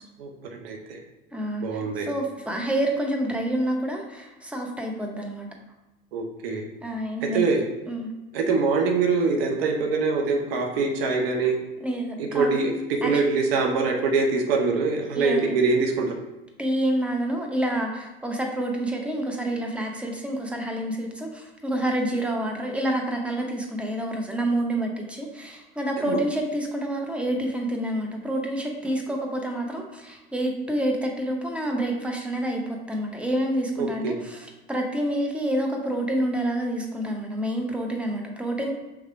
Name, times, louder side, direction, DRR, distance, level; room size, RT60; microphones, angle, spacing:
voice 1, 0.2-1.0 1.6-2.1 6.1-6.7 7.2-7.6 8.3-11.6 12.2-16.1 26.0-26.2 33.8-34.1, right 4 dB, 75° right, 3 dB, 0.8 m, -24 dB
voice 2, 1.3-5.5 6.8-7.5 7.9-8.1 11.8-12.5 13.0-13.3 15.1-15.5 16.6-38.7, right 1 dB, 5° right, 2 dB, 0.9 m, -28 dB
3.5 x 3.3 x 4.7 m, 1.0 s
hypercardioid pair, 70°, 30 cm